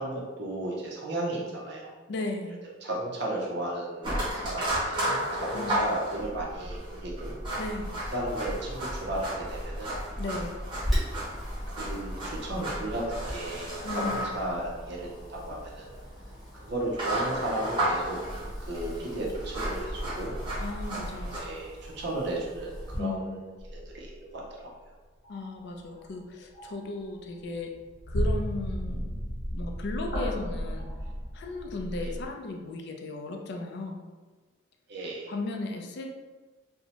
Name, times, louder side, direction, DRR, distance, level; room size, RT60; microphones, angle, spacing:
voice 1, 0.0-1.9 2.8-4.2 4.4-7.3 8.1-10.0 11.8-15.9 16.6-18.2 18.7-20.3 21.3-24.7 32.0-32.1 34.9-35.3, right 1 dB, 60° right, -3 dB, 0.6 m, -34 dB
voice 2, 2.1-2.6 5.5-5.8 7.6-7.9 10.2-10.6 13.8-14.3 20.6-21.4 23.0-23.5 25.3-27.7 28.1-30.9 31.3-34.0 35.3-36.1, left 2 dB, 60° left, 2 dB, 0.3 m, -36 dB
sound 1, 4.0-21.4, right 1 dB, 25° right, 0.8 m, -33 dB
Wind, 10.7-23.0, equal, ahead, 1.0 m, -38 dB
sound 2, 23.6-24.1 25.2-25.4 25.8-26.2 26.5-26.9 27.3-32.3, equal, 80° left, 0.9 m, -33 dB
2.6 x 2.1 x 2.8 m, 1.3 s
head